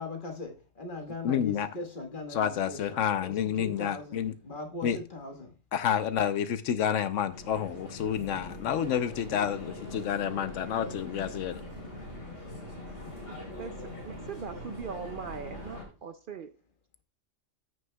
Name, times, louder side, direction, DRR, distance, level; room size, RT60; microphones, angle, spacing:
voice 1, 0.0-5.5 8.2-8.6 12.3-12.4, left 3 dB, 45° left, 4 dB, 1.5 m, -40 dB
voice 2, 1.2-1.7 2.3-4.3 4.8-5.0 5.7-11.6, left 9 dB, 85° left, 12 dB, 1.0 m, -29 dB
sound 1, 7.3-15.8, left 1 dB, 65° left, 3.8 m, -42 dB
voice 3, 13.5-16.5, right 6 dB, 60° right, 10 dB, 0.6 m, -40 dB
14.5 x 6.4 x 2.2 m, 0.33 s
omnidirectional pair, 1.3 m